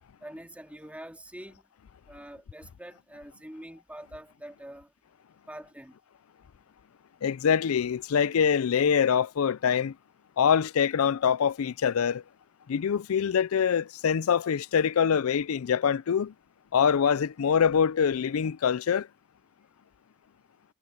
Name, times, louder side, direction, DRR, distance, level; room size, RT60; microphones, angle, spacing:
voice 1, 0.2-1.6 2.1-4.9 5.5-6.0, right 1 dB, 5° right, 2.2 m, -45 dB
voice 2, 7.2-10.0 10.4-12.2 12.7-16.3 16.7-19.1, left 7 dB, 85° left, 0.4 m, -24 dB
head